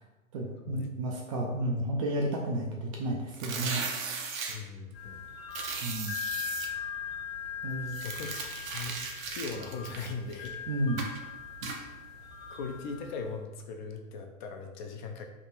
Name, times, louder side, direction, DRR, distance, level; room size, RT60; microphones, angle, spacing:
voice 1, 0.3-3.9 5.8-6.2 7.6-8.0 10.7-11.1 11.6-11.9, right 1 dB, 25° right, -1 dB, 0.3 m, -32 dB
sound 1, 3.3-4.6 5.5-6.7 7.9-10.5 11.0-11.2 11.6-11.8, right 5 dB, 75° right, 0.8 m, -37 dB
voice 2, 4.5-5.2 8.0-9.0 9.3-10.6 12.5-15.2, left 4 dB, 35° left, 4 dB, 0.4 m, -39 dB
sound 2, 4.9-13.3, left 7 dB, 55° left, 1.3 m, -40 dB
3.6 x 2.4 x 4.2 m, 1.1 s
hypercardioid pair, 125°, 41 cm